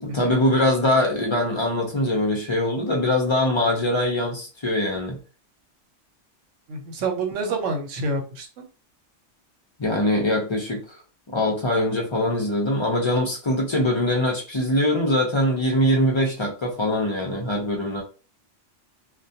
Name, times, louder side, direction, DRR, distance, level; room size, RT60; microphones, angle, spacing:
voice 1, 0.0-5.2 9.8-10.8 11.3-18.0, left 1 dB, 45° left, 0 dB, 0.3 m, -22 dB
voice 2, 6.7-8.7, right 3 dB, 80° right, 4 dB, 1.0 m, -28 dB
2.3 x 2.1 x 2.6 m, 0.34 s
omnidirectional pair, 1.3 m